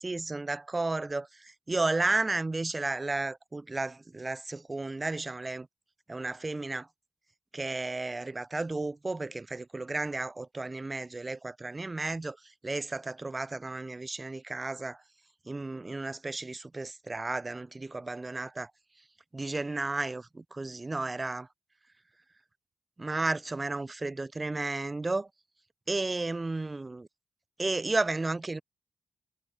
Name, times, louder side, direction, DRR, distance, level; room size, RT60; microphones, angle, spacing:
voice 1, 0.0-5.7 6.1-6.9 7.5-12.4 12.6-15.0 15.5-18.7 19.3-21.5 23.0-25.3 25.9-27.1 27.6-28.6, right 2 dB, 30° right, 0.4 m, -33 dB
cardioid pair, 55°, 0 cm